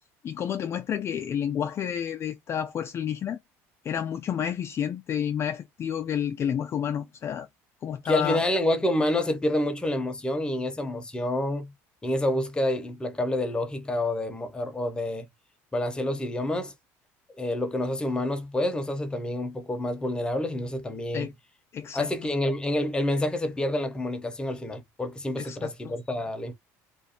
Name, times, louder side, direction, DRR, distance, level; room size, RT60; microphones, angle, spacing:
voice 1, 0.2-3.4 3.8-7.5 7.8-8.5 21.1-21.3 21.7-22.1 25.4-26.0, left 8 dB, 40° left, 0.3 m, -30 dB
voice 2, 8.0-11.7 12.0-15.3 15.7-16.7 17.4-21.3 21.9-26.5, left 1 dB, 10° left, 0.7 m, -28 dB
2.4 x 2.2 x 2.7 m
supercardioid pair, 95°, 7 cm